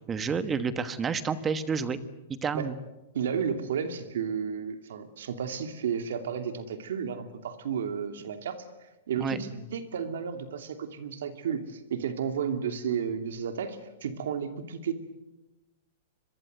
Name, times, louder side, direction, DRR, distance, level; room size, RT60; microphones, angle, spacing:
voice 1, 0.1-2.0 2.3-2.8 9.2-9.4, right 5 dB, 15° right, 13 dB, 1.2 m, -29 dB
voice 2, 3.1-14.9, right 7 dB, 80° right, 8 dB, 2.7 m, -32 dB
25.0 x 22.5 x 8.0 m, 1.0 s
supercardioid pair, 155°, 0 cm